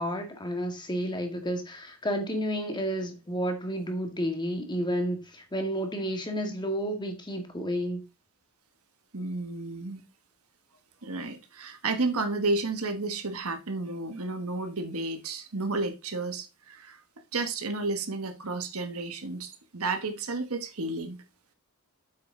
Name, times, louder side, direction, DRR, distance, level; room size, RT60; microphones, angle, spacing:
voice 1, 0.0-8.0, equal, 20° left, 1.7 m, -31 dB
voice 2, 9.1-10.0 11.0-17.0 17.3-21.2, right 3 dB, 85° right, 1.3 m, -32 dB
8.1 x 6.4 x 3.8 m
head